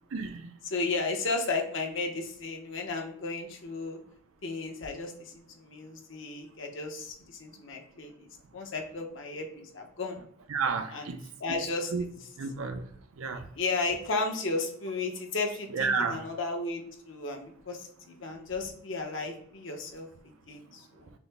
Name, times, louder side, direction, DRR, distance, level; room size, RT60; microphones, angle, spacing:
voice 1, 0.1-0.5 10.5-11.2 11.9-12.0 12.4-12.9 13.2-13.5 15.7-16.2, right 5 dB, 85° right, 0.5 m, -31 dB
voice 2, 0.6-4.0 4.4-10.2 10.9-11.9 12.2-12.3 13.5-21.1, left 3 dB, 65° left, 0.8 m, -34 dB
5.9 x 2.0 x 3.4 m
head